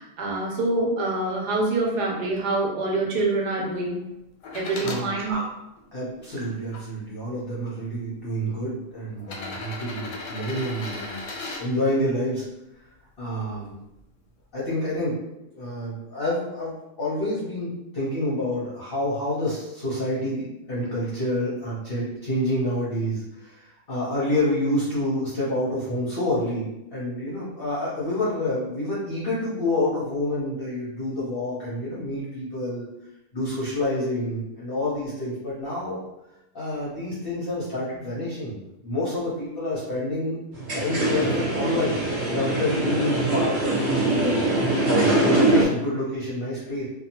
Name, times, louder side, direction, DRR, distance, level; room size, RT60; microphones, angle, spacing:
voice 1, 0.0-3.9 4.5-5.4, right 2 dB, 80° right, -1 dB, 1.2 m, -25 dB
sound 1, 4.4-5.0 5.8-6.8 7.8-7.9 9.2-11.6 13.5-13.6, left 2 dB, 90° left, 1.2 m, -36 dB
voice 2, 4.8-5.2 5.9-11.2 11.6-12.5 13.2-13.7 14.5-15.2 15.5-32.9 33.3-36.0 36.5-40.4 40.7-42.0 42.3-44.4 44.9-46.9, left 1 dB, 50° left, -8 dB, 0.7 m, -28 dB
sound 2, 40.5-45.6, right 2 dB, 45° right, 0.7 m, -23 dB
2.8 x 2.3 x 2.8 m, 0.88 s
omnidirectional pair, 1.7 m